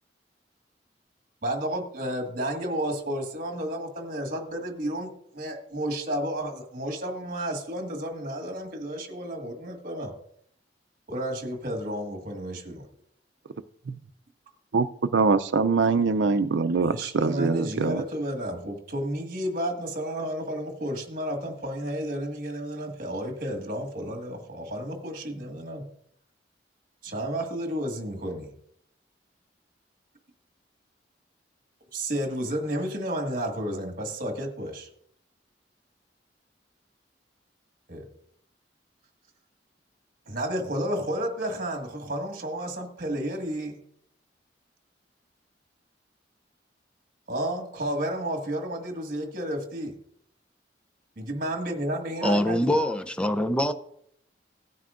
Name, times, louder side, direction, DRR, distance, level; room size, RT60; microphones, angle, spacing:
voice 1, 1.4-10.1 11.1-12.9 16.8-25.9 27.0-28.5 31.9-34.9 37.9-38.1 40.3-43.8 47.3-50.0 51.2-52.8, right 1 dB, 50° right, 1.7 m, -32 dB
voice 2, 15.1-18.0, right 4 dB, 85° right, 0.5 m, -23 dB
voice 3, 52.2-53.7, left 1 dB, 5° left, 0.5 m, -24 dB
16.5 x 9.3 x 2.5 m
head